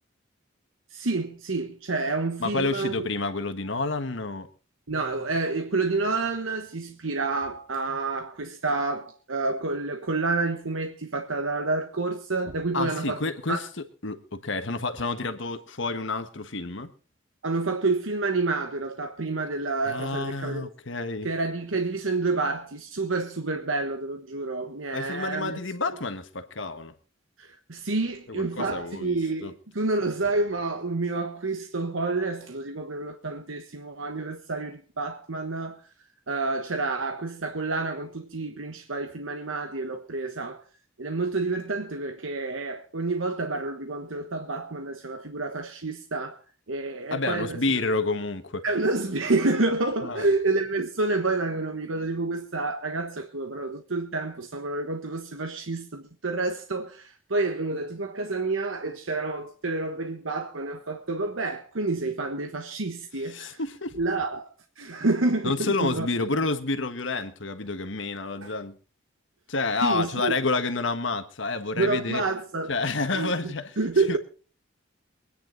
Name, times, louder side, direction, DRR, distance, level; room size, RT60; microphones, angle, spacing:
voice 1, 0.9-3.1 4.9-13.2 13.5-13.6 17.4-20.7 21.2-25.6 27.4-35.8 36.3-40.6 41.0-46.4 46.7-47.6 48.6-63.6 63.9-66.1 68.4-68.5 69.8-70.3 71.8-72.7 73.1-74.2, right 3 dB, 90° right, 1.3 m, -29 dB
voice 2, 2.4-4.5 12.7-13.6 14.0-16.9 19.9-21.3 24.9-26.9 28.3-29.5 47.1-48.6 50.0-50.3 63.2-64.0 65.4-68.8 69.5-72.2 72.7-73.7 74.1-74.2, left 3 dB, 75° left, 1.5 m, -29 dB
23.5 x 10.0 x 3.9 m
head